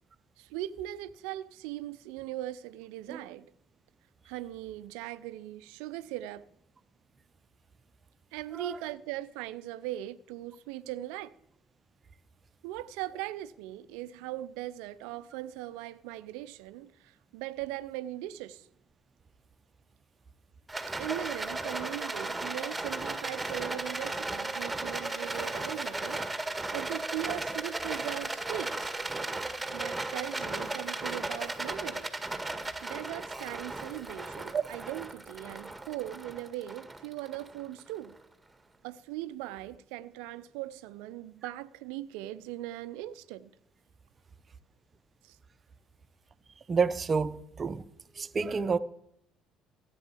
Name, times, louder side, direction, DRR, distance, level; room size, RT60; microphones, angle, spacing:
voice 1, 0.4-3.5 4.2-6.5 8.3-11.3 12.6-18.7 21.0-28.9 29.7-32.1 32.8-38.2 38.8-43.5 45.2-45.4, right 14 dB, 70° right, 0.6 m, -39 dB
Rattle, 20.7-38.1, right 2 dB, 10° right, 1.8 m, -36 dB
voice 2, 46.7-47.8 48.2-48.8, right 5 dB, 35° right, 0.8 m, -29 dB
15.0 x 9.1 x 7.4 m
figure-of-eight pair, 55°, 0 cm